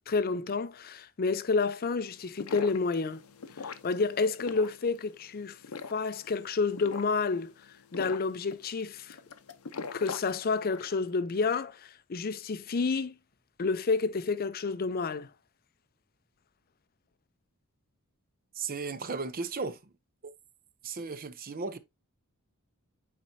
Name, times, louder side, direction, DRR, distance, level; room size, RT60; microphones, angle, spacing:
voice 1, 0.1-3.2 3.6-5.6 5.9-7.5 7.9-9.2 9.9-13.1 13.6-15.3, left 4 dB, 40° left, 0.5 m, -29 dB
sound 1, 2.2-11.0, left 4 dB, 75° left, 0.8 m, -43 dB
voice 2, 18.5-19.8 20.2-20.3 20.8-21.8, right 4 dB, 40° right, 0.7 m, -35 dB
8.5 x 4.3 x 2.7 m
head